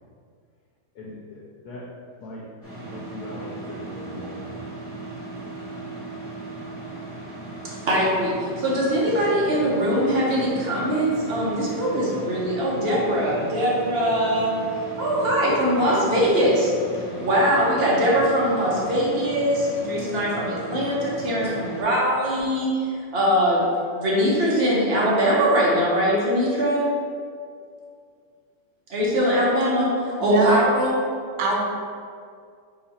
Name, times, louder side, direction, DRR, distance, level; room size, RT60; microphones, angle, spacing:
voice 1, 0.9-1.8 2.2-2.4 2.8-4.7, left 2 dB, 70° left, -4 dB, 1.1 m, -39 dB
sound 1, 2.6-21.8, right 2 dB, 10° left, 0.8 m, -36 dB
voice 2, 7.6-14.5 15.0-16.7 17.2-22.9 23.1-23.7 23.9-26.9 28.9-31.0, equal, 45° right, -5 dB, 0.9 m, -22 dB
voice 3, 30.2-30.6 31.4-31.6, right 4 dB, 75° right, 0 dB, 1.3 m, -21 dB
3.9 x 2.9 x 4.2 m, 2.2 s
omnidirectional pair, 1.9 m